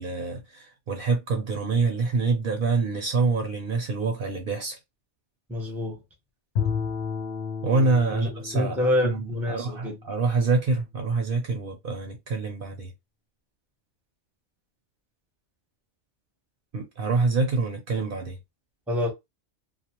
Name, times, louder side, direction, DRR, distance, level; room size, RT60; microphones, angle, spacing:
voice 1, 0.0-4.8 7.6-12.9 16.7-18.4, right 3 dB, 55° right, 0.7 m, -26 dB
voice 2, 5.5-6.0 8.1-10.0 18.9-19.1, left 1 dB, ahead, 0.7 m, -27 dB
Bowed string instrument, 6.6-10.8, left 6 dB, 60° left, 0.8 m, -33 dB
2.3 x 2.3 x 2.9 m
omnidirectional pair, 1.2 m